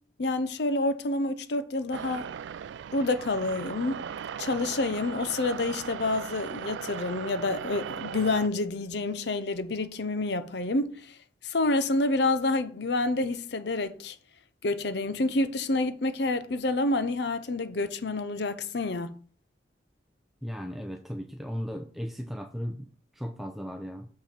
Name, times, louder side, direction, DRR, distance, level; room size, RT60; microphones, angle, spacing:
voice 1, 0.2-2.3 2.9-4.0 4.4-11.1 11.4-14.2 14.6-19.1, left 2 dB, 65° left, 0.7 m, -28 dB
sound 1, 1.9-8.5, right 8 dB, 80° right, 0.3 m, -38 dB
voice 2, 20.4-24.1, equal, ahead, 0.4 m, -36 dB
6.9 x 5.8 x 4.3 m
head